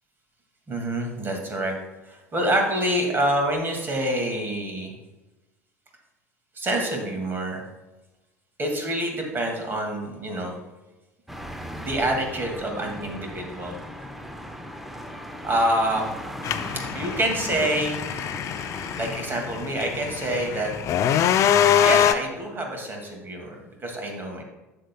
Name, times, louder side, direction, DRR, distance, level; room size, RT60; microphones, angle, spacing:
voice 1, 0.7-1.7 2.1-5.0 6.6-7.6 8.6-10.6 11.8-13.8 15.4-16.1 16.9-18.0 19.0-20.7 21.8-24.4, right 1 dB, 25° right, 2 dB, 2.1 m, -26 dB
sound 1, 11.3-19.3, equal, ahead, 0.8 m, -38 dB
sound 2, 16.4-22.1, left 9 dB, 40° left, 0.5 m, -24 dB
12.5 x 7.8 x 2.2 m, 1.1 s
figure-of-eight pair, 70°, 8 cm